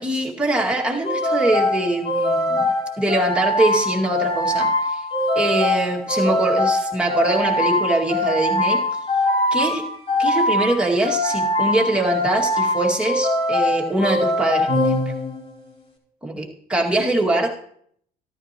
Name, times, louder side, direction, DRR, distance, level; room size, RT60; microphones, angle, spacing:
voice 1, 0.0-2.7 3.0-5.0 5.4-8.8 9.5-9.9 10.2-15.0 16.2-17.5, right 2 dB, 5° right, -3 dB, 2.1 m, -23 dB
sound 1, 1.0-15.6, left 1 dB, 35° left, 4.6 m, -22 dB
13.5 x 12.0 x 3.0 m, 0.65 s
cardioid pair, 110°, 17 cm